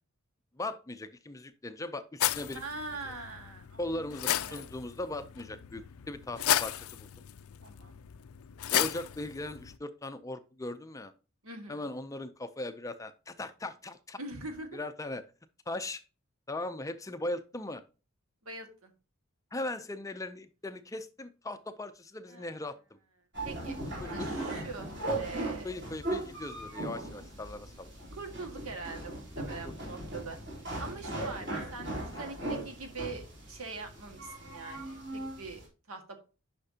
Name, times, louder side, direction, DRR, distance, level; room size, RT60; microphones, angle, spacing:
voice 1, 0.6-2.6 3.0-3.1 3.8-7.1 8.7-11.1 11.7-14.2 14.7-15.2 15.7-16.0 16.5-17.8 19.5-22.8 24.0-24.3 25.6-27.9 29.6-29.9, left 2 dB, 15° left, 10 dB, 0.4 m, -39 dB
sound 1, 2.2-9.8, left 12 dB, 80° left, 0.4 m, -34 dB
voice 2, 2.5-4.7 7.6-8.0 11.4-11.8 14.2-14.8 18.4-18.9 22.3-22.6 23.4-25.7 28.1-30.4 30.8-36.2, right 3 dB, 75° right, 5 dB, 1.7 m, -43 dB
sound 2, 23.3-35.6, right 1 dB, 50° right, 3.5 m, -38 dB
10.0 x 5.8 x 2.8 m, 0.33 s
head